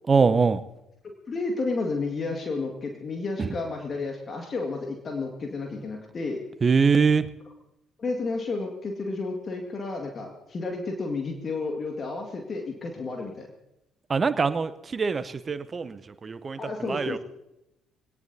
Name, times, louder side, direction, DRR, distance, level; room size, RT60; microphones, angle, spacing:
voice 1, 0.1-0.6 3.4-3.5 6.6-7.3 14.1-17.2, right 5 dB, 35° right, 14 dB, 0.8 m, -23 dB
voice 2, 1.0-6.4 8.0-13.5 16.6-17.2, left 3 dB, 40° left, 2 dB, 2.0 m, -31 dB
23.0 x 18.5 x 2.8 m, 0.90 s
figure-of-eight pair, 50°, 0 cm